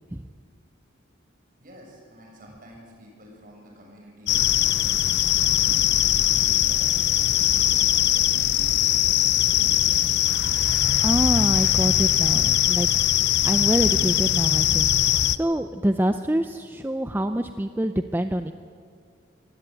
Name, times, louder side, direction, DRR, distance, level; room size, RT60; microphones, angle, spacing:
voice 1, 1.6-10.7, equal, 45° right, -1 dB, 7.0 m, -49 dB
sound 1, 4.3-15.4, left 11 dB, 55° left, 0.6 m, -21 dB
voice 2, 11.0-12.9 13.4-18.5, right 1 dB, 10° right, 8 dB, 0.5 m, -26 dB
25.0 x 16.0 x 9.0 m, 2.2 s
head